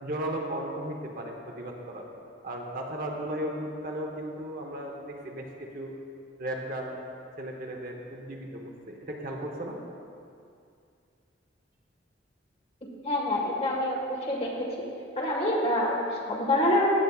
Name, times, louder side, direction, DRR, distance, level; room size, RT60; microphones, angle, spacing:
voice 1, 0.0-2.0 2.4-5.9 6.4-7.0 7.4-9.8, right 1 dB, 50° right, 1 dB, 0.9 m, -35 dB
voice 2, 13.0-14.7 15.1-17.0, left 1 dB, 35° left, -3 dB, 1.6 m, -26 dB
14.5 x 7.1 x 2.4 m, 2.4 s
head